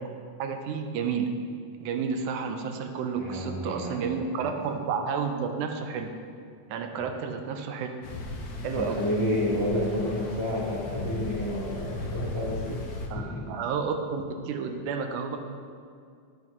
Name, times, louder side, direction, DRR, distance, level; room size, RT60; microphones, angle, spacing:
voice 1, 0.4-1.3 1.7-6.1 6.7-7.9 8.6-9.0 13.1-15.4, right 6 dB, 85° right, 5 dB, 2.1 m, -31 dB
voice 2, 3.1-4.5 7.0-7.1 8.7-12.8 13.1-13.4, left 1 dB, 10° left, -9 dB, 1.7 m, -30 dB
sound 1, 8.0-13.1, left 2 dB, 85° left, 1.0 m, -36 dB
10.5 x 7.9 x 3.0 m, 2.2 s
omnidirectional pair, 3.4 m